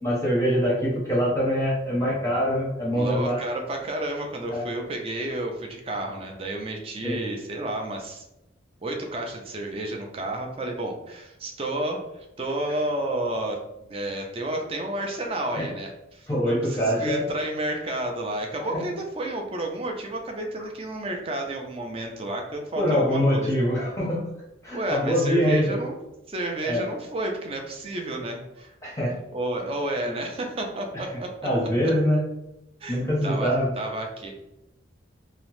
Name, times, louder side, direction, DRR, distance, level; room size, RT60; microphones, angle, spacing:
voice 1, 0.0-3.4 4.5-4.6 7.0-7.2 15.6-15.7 16.3-17.2 18.7-18.9 22.8-24.3 24.6-25.8 26.6-26.8 28.8-29.1 30.0-30.2 30.9-31.0 31.4-32.2 32.9-33.7, equal, 15° left, -5 dB, 0.6 m, -24 dB
voice 2, 2.9-8.2 8.8-13.6 13.9-23.5 24.7-26.0 26.3-28.7 29.3-31.3 31.8-31.9 32.8-34.3, right 1 dB, 30° right, 2 dB, 0.4 m, -31 dB
2.8 x 2.0 x 3.0 m, 0.89 s
head